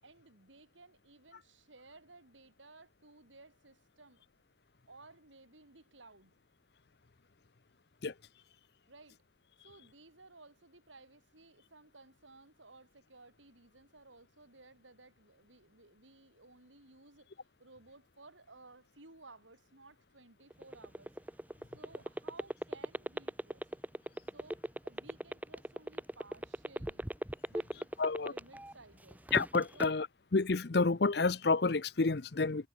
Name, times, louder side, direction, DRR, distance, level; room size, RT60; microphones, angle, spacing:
voice 1, 0.0-4.2 4.9-6.4 8.9-9.2 9.6-21.1 21.7-23.7 24.3-27.1 27.5-29.2 29.7-30.0, right 3 dB, 90° right, 7.6 m, -58 dB
sound 1, 20.5-28.7 29.1-29.9, equal, 10° right, 0.9 m, -37 dB
voice 2, 28.0-28.3 29.3-30.1 30.3-32.7, left 3 dB, 60° left, 0.7 m, -29 dB
head